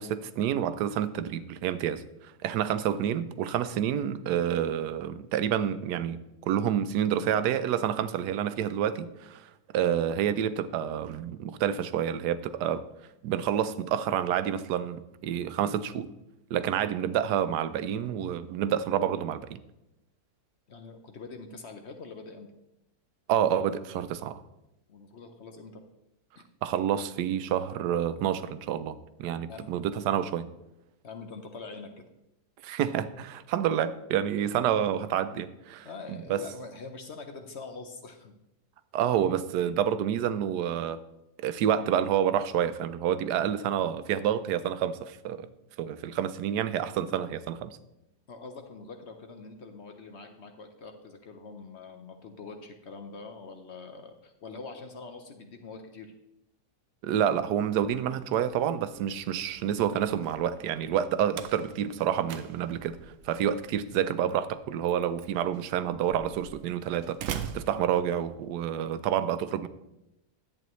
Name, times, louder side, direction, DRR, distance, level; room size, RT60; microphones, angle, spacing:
voice 1, 0.0-12.8 13.2-16.1 16.5-19.6 23.3-24.4 26.6-30.5 32.6-36.4 38.9-41.0 41.4-45.5 45.8-47.8 57.0-63.0 63.2-69.7, right 9 dB, 90° right, 1.2 m, -28 dB
voice 2, 20.7-22.5 24.9-25.8 26.4-26.5 29.5-29.7 31.0-32.1 35.8-38.4 48.3-56.1, left 4 dB, 55° left, 0.9 m, -44 dB
Slam, 57.8-68.6, right 8 dB, 65° right, 0.9 m, -44 dB
11.0 x 8.4 x 3.1 m
omnidirectional pair, 1.7 m